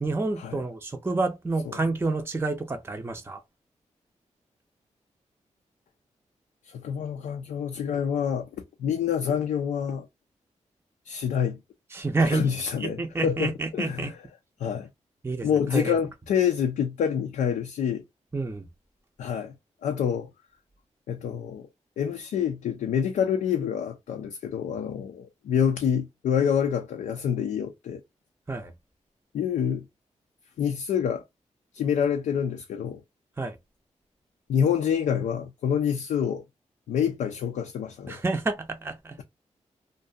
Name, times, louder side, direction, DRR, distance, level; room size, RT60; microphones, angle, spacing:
voice 1, 0.0-3.4 11.9-12.4 12.8-14.1 15.2-15.9 18.3-18.6 28.5-28.7 33.4-33.6 38.1-39.2, right 3 dB, 20° right, 0.5 m, -29 dB
voice 2, 6.6-8.5 8.8-10.1 11.0-11.6 12.3-14.1 14.6-14.9 15.4-18.0 19.2-19.5 19.8-20.3 21.1-21.6 22.0-28.0 29.3-29.9 30.6-31.2 31.7-33.0 34.5-36.4 36.9-38.2, left 8 dB, 90° left, 0.4 m, -27 dB
2.5 x 2.2 x 2.5 m
cardioid pair, 50°, 13 cm